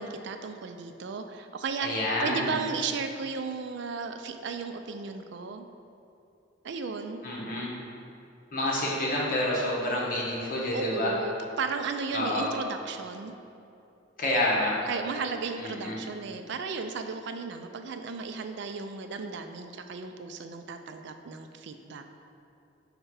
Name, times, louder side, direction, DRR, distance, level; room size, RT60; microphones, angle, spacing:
voice 1, 0.0-1.9 2.2-5.6 6.6-7.2 10.7-13.3 14.7-22.0, right 5 dB, 65° right, 7 dB, 0.4 m, -35 dB
voice 2, 1.8-2.5 7.2-7.7 8.5-11.1 12.1-12.4 14.2-14.7 15.6-16.0, left 1 dB, 50° left, -4 dB, 1.3 m, -28 dB
5.0 x 4.4 x 4.7 m, 2.7 s
head